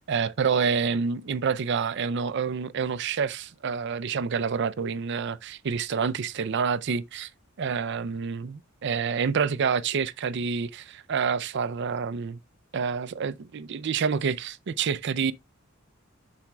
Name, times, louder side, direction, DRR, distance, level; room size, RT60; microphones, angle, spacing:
voice 1, 0.1-7.3 7.6-12.4 12.7-15.3, right 6 dB, 55° right, 0.4 m, -28 dB
12.0 x 4.2 x 2.2 m
head